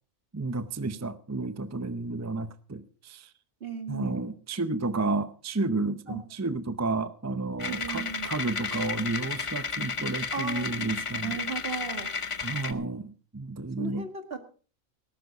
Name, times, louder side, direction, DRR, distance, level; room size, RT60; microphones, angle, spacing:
voice 1, 0.3-3.3 3.9-11.4 12.4-14.1, right 3 dB, 20° right, 11 dB, 0.4 m, -31 dB
voice 2, 3.6-4.2 6.1-6.2 7.7-8.3 10.3-11.0 11.2-12.1 13.8-14.4, right 5 dB, 45° right, 6 dB, 2.1 m, -36 dB
sound 1, 7.6-12.7, left 5 dB, 35° left, 0.5 m, -33 dB
19.0 x 12.0 x 4.0 m, 0.39 s
omnidirectional pair, 1.4 m